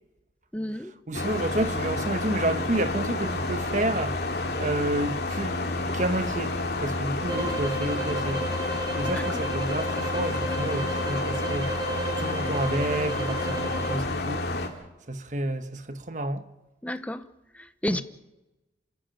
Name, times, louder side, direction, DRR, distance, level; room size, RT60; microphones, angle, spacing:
voice 1, 0.5-0.9 9.1-9.2 16.8-17.3 17.5-18.0, left 1 dB, 10° left, 0.9 m, -31 dB
sound 1, 1.1-14.7, left 2 dB, 60° left, 2.7 m, -30 dB
voice 2, 1.1-8.4 9.0-14.5 15.1-16.5 17.9-18.0, right 1 dB, 40° right, 1.2 m, -30 dB
sound 2, 7.2-14.0, right 1 dB, 20° right, 7.5 m, -34 dB
28.0 x 13.0 x 9.0 m
head